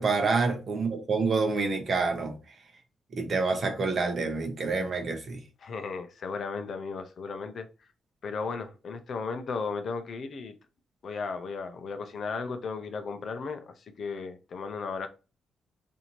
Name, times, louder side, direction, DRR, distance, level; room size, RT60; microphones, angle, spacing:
voice 1, 0.0-2.3 3.1-5.4, right 4 dB, 35° right, 0.8 m, -27 dB
voice 2, 5.6-7.7 8.2-10.5 11.0-15.1, left 4 dB, 45° left, 0.5 m, -35 dB
4.2 x 2.6 x 2.9 m
wide cardioid pair, 165°, 0 cm